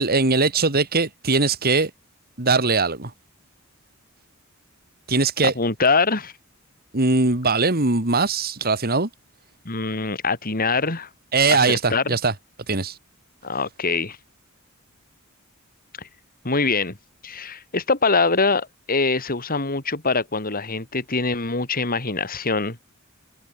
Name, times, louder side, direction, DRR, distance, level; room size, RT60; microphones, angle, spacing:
voice 1, 0.0-1.9 2.4-3.1 5.1-5.5 6.9-9.1 11.3-12.3 12.7-13.0, right 3 dB, 45° right, 2.6 m, -20 dB
voice 2, 5.5-6.3 9.6-11.1 11.5-12.0 13.4-14.2 16.0-16.1 16.4-17.0 17.2-22.8, left 4 dB, 45° left, 3.3 m, -23 dB
head